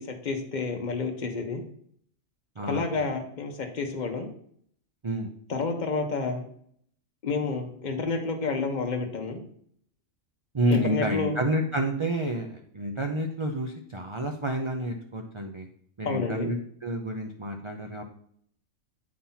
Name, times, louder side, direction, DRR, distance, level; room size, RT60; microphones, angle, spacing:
voice 1, 0.0-1.6 2.6-4.3 5.5-6.5 7.2-9.4 10.7-11.4 16.0-16.5, left 4 dB, 40° left, 3 dB, 1.0 m, -30 dB
voice 2, 2.6-2.9 5.0-5.3 10.5-15.7 16.0-18.0, right 1 dB, 45° right, 2 dB, 0.4 m, -29 dB
8.5 x 2.9 x 5.6 m, 0.64 s
omnidirectional pair, 1.4 m